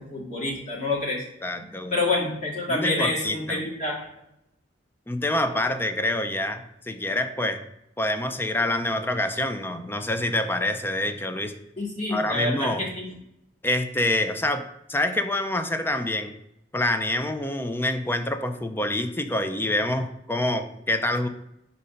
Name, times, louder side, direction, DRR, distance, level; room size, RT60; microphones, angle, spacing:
voice 1, 0.0-1.2 1.9-4.1 11.8-13.1, left 2 dB, 40° left, -3 dB, 2.0 m, -27 dB
voice 2, 1.4-2.0 2.7-3.7 5.1-7.6 8.0-11.5 12.1-12.8 13.6-16.3 16.7-21.3, left 1 dB, 10° left, 8 dB, 0.5 m, -26 dB
5.2 x 4.1 x 5.6 m, 0.80 s
head